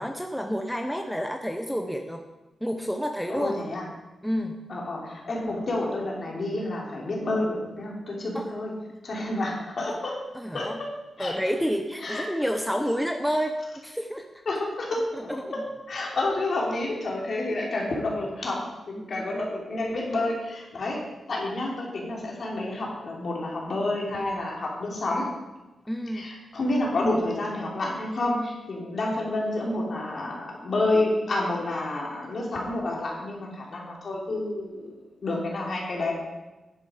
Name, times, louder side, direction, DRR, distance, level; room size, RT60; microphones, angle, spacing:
voice 1, 0.0-2.2 2.6-3.5 4.2-4.6 8.3-8.5 8.9-9.0 10.3-10.8 11.2-13.6 13.8-14.3 15.1-15.5 19.0-19.3 25.9-26.3, equal, ahead, 5 dB, 0.7 m, -29 dB
voice 2, 3.3-3.8 4.7-8.7 9.0-10.1 10.5-10.9 11.2-11.3 12.0-12.2 14.4-15.6 15.9-18.6 18.9-21.0 21.3-25.3 26.1-34.9 35.2-36.1, left 2 dB, 50° left, -2 dB, 3.2 m, -29 dB
10.5 x 9.8 x 5.1 m, 1.1 s
wide cardioid pair, 130°, 0 cm